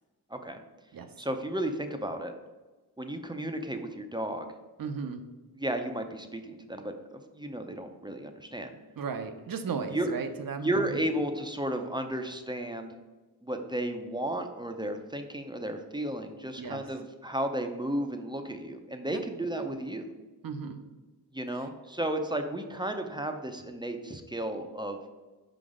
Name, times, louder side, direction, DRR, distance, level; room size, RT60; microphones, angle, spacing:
voice 1, 0.3-0.6 1.2-2.3 3.0-4.5 5.6-8.7 9.9-10.1 10.6-13.0 13.4-20.1 21.3-25.0, right 1 dB, 10° right, 5 dB, 0.6 m, -33 dB
voice 2, 4.8-5.2 9.0-11.0 16.6-16.8 19.1-19.2 20.4-20.8 21.5-21.7, right 5 dB, 55° right, 7 dB, 0.7 m, -35 dB
5.1 x 4.0 x 4.9 m, 1.2 s
cardioid pair, 65°, 40 cm